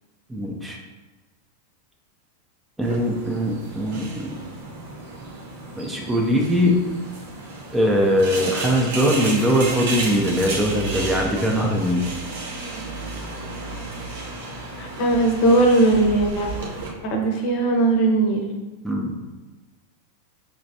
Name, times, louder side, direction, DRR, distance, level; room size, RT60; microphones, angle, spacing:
voice 1, 0.3-0.8 2.8-4.4 5.8-6.7 7.7-12.0 18.8-19.1, equal, 5° right, -1 dB, 0.5 m, -21 dB
sound 1, 2.8-16.9, right 2 dB, 60° right, 1.0 m, -33 dB
voice 2, 14.8-16.5 17.0-18.5, right 2 dB, 45° left, 2 dB, 0.8 m, -19 dB
5.7 x 3.0 x 2.7 m, 1.2 s
figure-of-eight pair, 90°, 0 cm